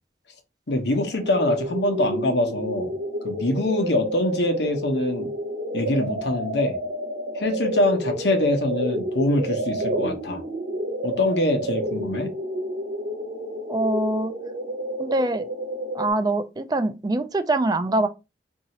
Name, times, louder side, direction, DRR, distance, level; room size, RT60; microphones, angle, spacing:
voice 1, 0.7-2.9 3.2-5.3 5.7-6.8 7.3-10.4 11.0-12.3, left 1 dB, 75° left, 0.9 m, -24 dB
sound 1, 0.9-16.1, right 1 dB, 90° right, 0.9 m, -30 dB
voice 2, 13.7-14.3 15.0-15.5 15.9-18.1, right 2 dB, 20° right, 0.4 m, -24 dB
2.8 x 2.7 x 4.2 m
head